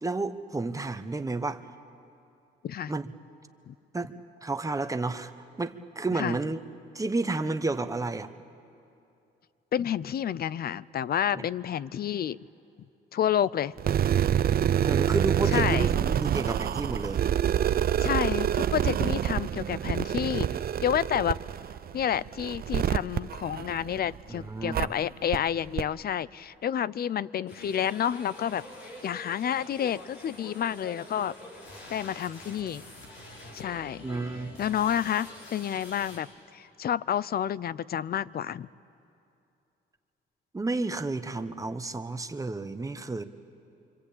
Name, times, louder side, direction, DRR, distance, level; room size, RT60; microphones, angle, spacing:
voice 1, 0.0-1.7 2.9-3.1 3.9-5.3 5.6-6.6 6.9-8.3 14.8-17.2 24.3-24.9 34.0-34.5 40.5-43.2, right 3 dB, 15° right, 9 dB, 1.1 m, -31 dB
voice 2, 9.7-12.4 13.1-13.7 15.5-15.9 18.0-21.4 21.9-28.6 29.0-31.3 31.9-32.8 33.5-34.0 34.6-36.3 36.5-38.7, left 9 dB, 50° left, 20 dB, 0.6 m, -29 dB
sound 1, 13.8-24.2 24.7-24.9 25.3-25.4 25.8-25.9, right 10 dB, 50° right, 0.6 m, -27 dB
sound 2, 27.5-36.2, left 1 dB, 80° left, 6.2 m, -46 dB
27.0 x 24.5 x 8.6 m, 2.7 s
cardioid pair, 90°, 20 cm